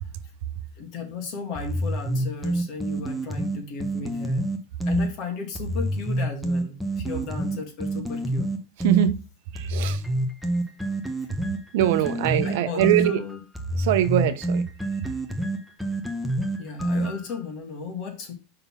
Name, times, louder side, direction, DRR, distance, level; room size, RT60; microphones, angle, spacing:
voice 1, 0.8-4.5 4.9-8.5 12.4-13.4 16.6-18.3, left 4 dB, 50° left, 2.0 m, -35 dB
sound 1, 1.6-5.1 5.6-9.1 9.6-17.4, right 1 dB, ahead, 0.8 m, -27 dB
voice 2, 8.8-9.2 9.5-10.0 11.7-13.2 13.7-14.6, right 12 dB, 65° right, 0.7 m, -22 dB
5.5 x 3.9 x 5.8 m
supercardioid pair, 145°, 0 cm